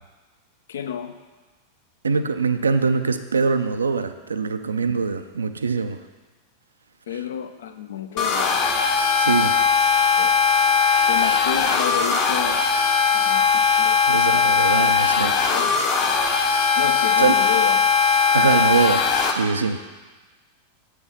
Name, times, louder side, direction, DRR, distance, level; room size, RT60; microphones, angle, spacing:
voice 1, 0.7-1.1 7.1-8.6 10.2-10.3 11.1-12.6 13.1-14.0 14.3-14.5 15.5-15.9 16.8-17.8, left 8 dB, 65° left, 9 dB, 0.6 m, -31 dB
voice 2, 2.0-6.0 9.2-9.6 14.1-15.3 17.2-17.3 18.3-19.8, right 4 dB, 75° right, 10 dB, 0.4 m, -23 dB
sound 1, 8.2-19.3, left 5 dB, 40° left, 1.0 m, -19 dB
7.8 x 5.8 x 5.5 m, 1.3 s
figure-of-eight pair, 90°, 0 cm